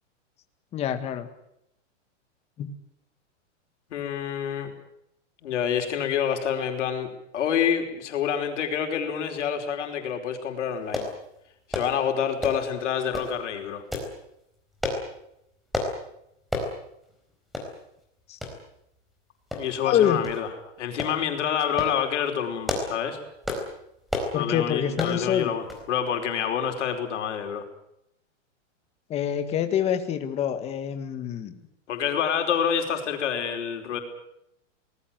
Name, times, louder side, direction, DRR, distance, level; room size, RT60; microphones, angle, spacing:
voice 1, 0.7-1.3 2.6-2.7 18.3-18.4 19.8-20.2 24.3-25.5 29.1-31.5, left 9 dB, 15° left, 8 dB, 1.7 m, -26 dB
voice 2, 3.9-4.7 5.4-11.1 11.7-13.8 19.6-20.5 20.8-23.2 24.3-27.6 31.9-34.0, left 8 dB, 70° left, 5 dB, 5.0 m, -27 dB
sound 1, 10.9-11.1 11.7-11.9 12.4-12.7 13.1-13.3 13.9-14.1 14.8-15.0 15.7-15.9 16.5-16.7 17.1-17.2 17.5-17.7 18.4-18.6 19.5-19.9 20.2-20.4 21.0-21.2 21.6-22.0 22.5-23.0 23.4-23.7 24.1-24.3 25.0-25.2 25.7-25.9 26.2-26.3, left 2 dB, ahead, 4.3 m, -30 dB
25.5 x 19.5 x 7.7 m, 0.79 s
supercardioid pair, 175°, 37 cm